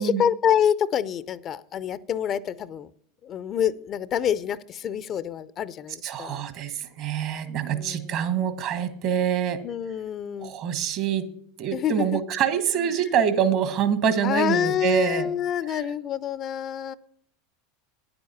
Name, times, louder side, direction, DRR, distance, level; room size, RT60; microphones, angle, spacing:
voice 1, 0.0-2.9 3.2-6.4 7.7-8.2 9.6-10.5 11.7-12.2 14.2-17.0, left 9 dB, 40° left, 17 dB, 0.5 m, -27 dB
voice 2, 6.0-9.6 10.4-11.3 11.6-15.3 15.7-15.8, right 8 dB, 50° right, 11 dB, 1.2 m, -25 dB
9.8 x 7.9 x 5.7 m, 0.65 s
hypercardioid pair, 85°, 0 cm